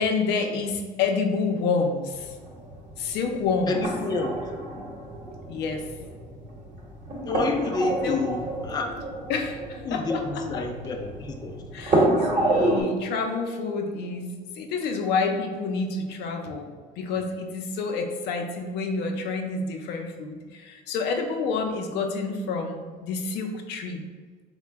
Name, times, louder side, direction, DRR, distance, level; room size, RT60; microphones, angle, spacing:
voice 1, 0.0-2.4 3.0-3.8 5.5-5.9 8.0-8.2 9.3-10.6 11.7-14.3 14.6-24.0, left 4 dB, 80° left, 3 dB, 0.5 m, -28 dB
sound 1, 2.1-12.8, right 1 dB, 45° right, 0.9 m, -29 dB
voice 2, 3.7-4.3 7.3-8.9 9.9-11.6, left 3 dB, 25° left, 3 dB, 0.4 m, -29 dB
3.8 x 2.1 x 3.3 m, 1.5 s
cardioid pair, 110°, 17 cm